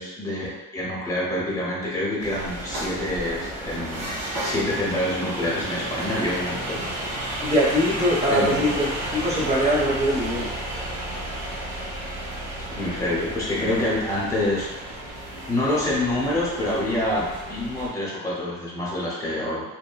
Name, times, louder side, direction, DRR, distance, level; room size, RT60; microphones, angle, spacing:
voice 1, 0.0-6.8 8.3-8.6 12.7-14.7 15.5-17.2 17.5-19.6, left 1 dB, 10° left, -6 dB, 0.9 m, -26 dB
sound 1, 2.2-17.9, right 1 dB, 65° right, 1.1 m, -32 dB
voice 2, 7.4-10.5, equal, 20° right, -6 dB, 1.0 m, -22 dB
2.8 x 2.2 x 2.2 m, 1.0 s
cardioid pair, 90°, 30 cm